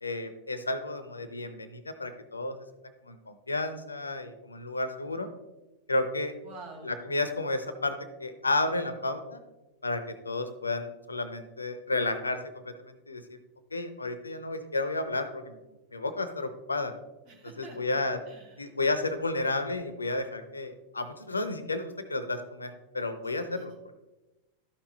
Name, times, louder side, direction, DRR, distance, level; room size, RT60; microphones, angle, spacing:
voice 1, 0.0-2.6 3.0-5.3 5.9-6.3 6.8-9.4 9.8-12.4 12.6-13.2 13.7-15.6 15.9-16.9 17.6-18.2 18.6-23.7, left 2 dB, 80° left, 11 dB, 0.7 m, -32 dB
voice 2, 6.4-6.9 17.3-18.0 18.3-18.7 23.5-23.6, right 3 dB, 45° right, 0 dB, 2.3 m, -47 dB
12.5 x 5.9 x 2.9 m, 1.1 s
figure-of-eight pair, 90°, 0 cm